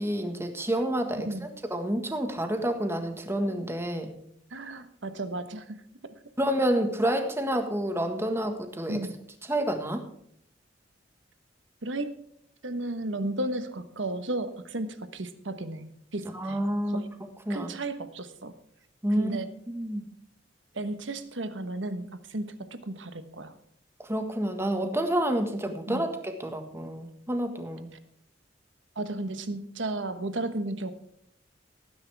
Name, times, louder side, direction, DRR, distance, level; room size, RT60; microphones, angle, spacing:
voice 1, 0.0-4.1 6.4-9.0 9.5-10.1 16.3-17.0 17.5-17.7 19.0-19.4 19.7-20.0 24.1-27.9, right 1 dB, 15° right, 6 dB, 1.6 m, -29 dB
voice 2, 4.5-5.8 6.0-6.1 8.9-9.1 11.8-12.1 12.6-16.6 16.8-17.1 17.5-18.5 19.2-19.5 20.7-23.5 25.9-26.1 28.9-30.9, right 2 dB, 85° right, 10 dB, 1.3 m, -34 dB
18.5 x 10.0 x 3.5 m, 0.70 s
head